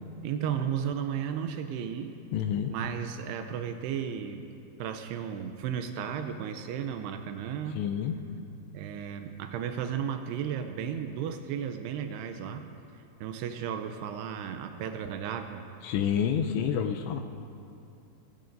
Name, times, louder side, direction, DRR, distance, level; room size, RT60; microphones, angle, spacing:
voice 1, 0.2-2.1 2.7-4.5 4.8-7.8 8.7-12.7 13.2-15.6, right 8 dB, 80° right, 7 dB, 2.4 m, -34 dB
voice 2, 2.3-2.7 7.7-8.2 15.8-17.2, left 8 dB, 80° left, 6 dB, 2.6 m, -28 dB
28.5 x 16.0 x 2.6 m, 2.6 s
omnidirectional pair, 5.4 m